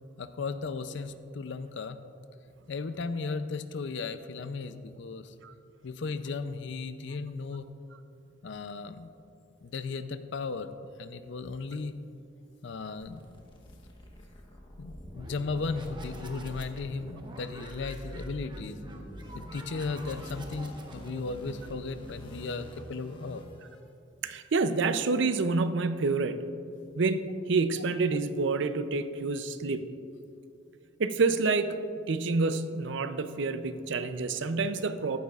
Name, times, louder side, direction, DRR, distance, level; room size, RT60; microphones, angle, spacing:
voice 1, 0.2-2.0 2.7-5.3 5.8-7.7 8.4-9.1 9.6-10.7 11.0-11.9 12.6-13.2 14.8-18.8 19.3-23.4, left 4 dB, 65° left, 11 dB, 0.5 m, -36 dB
sound 1, 13.0-23.8, equal, 25° left, 1.3 m, -47 dB
sound 2, 14.7-22.3, right 1 dB, 25° right, 0.9 m, -47 dB
voice 2, 24.2-26.4 26.9-29.9 31.0-31.8 32.1-35.2, right 3 dB, 65° right, 10 dB, 0.6 m, -28 dB
14.5 x 11.5 x 2.4 m, 2.7 s
head